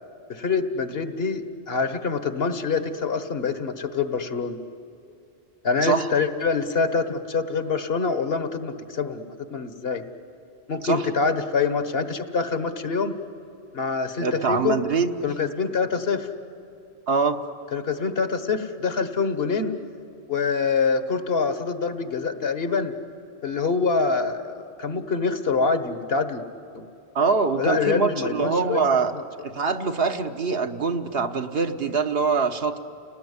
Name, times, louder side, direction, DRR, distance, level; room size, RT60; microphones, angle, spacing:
voice 1, 0.3-4.6 5.6-9.2 9.5-10.0 10.7-13.1 13.7-14.8 15.2-16.3 17.7-19.7 20.3-22.9 23.4-26.4 26.7-26.9 27.6-28.8 29.1-29.2, left 5 dB, 65° left, 9 dB, 1.6 m, -25 dB
voice 2, 14.2-15.1 17.1-17.4 27.1-29.1 29.4-32.8, right 4 dB, 65° right, 6 dB, 1.4 m, -23 dB
30.0 x 19.0 x 9.7 m, 2.7 s
omnidirectional pair, 1.1 m